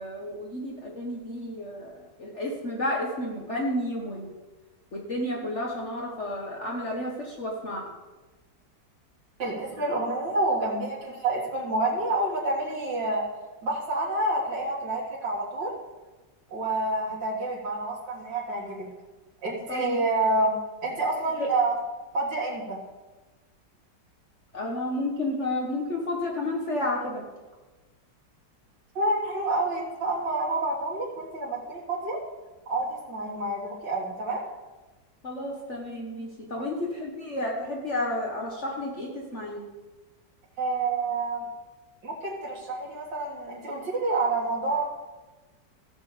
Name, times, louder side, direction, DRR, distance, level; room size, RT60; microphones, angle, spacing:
voice 1, 0.0-4.4 4.9-7.8 19.7-20.0 21.4-21.5 24.5-27.2 35.2-39.6, left 1 dB, 45° left, -1 dB, 1.5 m, -31 dB
voice 2, 9.4-13.2 13.6-15.7 16.5-18.9 19.4-20.6 20.8-21.8 22.1-22.8 28.9-32.2 32.7-34.4 36.5-36.6 40.6-41.4 42.0-44.9, right 2 dB, 70° right, -6 dB, 2.5 m, -28 dB
14.5 x 7.2 x 5.0 m, 1.2 s
omnidirectional pair, 1.9 m